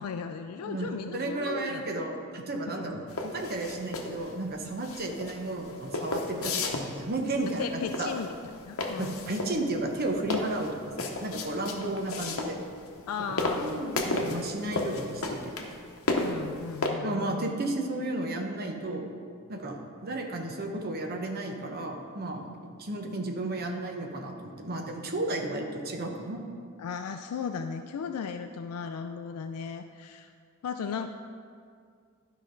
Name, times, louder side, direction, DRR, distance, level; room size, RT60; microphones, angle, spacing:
voice 1, 0.0-1.9 2.6-3.0 7.6-9.1 13.1-14.4 16.2-17.6 26.8-30.3 30.6-31.1, left 6 dB, 90° left, 6 dB, 0.3 m, -36 dB
voice 2, 0.6-3.0 3.3-8.1 9.0-12.6 13.5-15.5 17.0-19.1 19.5-22.5 22.8-26.4, right 2 dB, 45° right, 3 dB, 0.9 m, -33 dB
sound 1, 3.1-16.9, left 2 dB, 65° left, 0.9 m, -33 dB
11.5 x 5.2 x 3.8 m, 2.2 s
head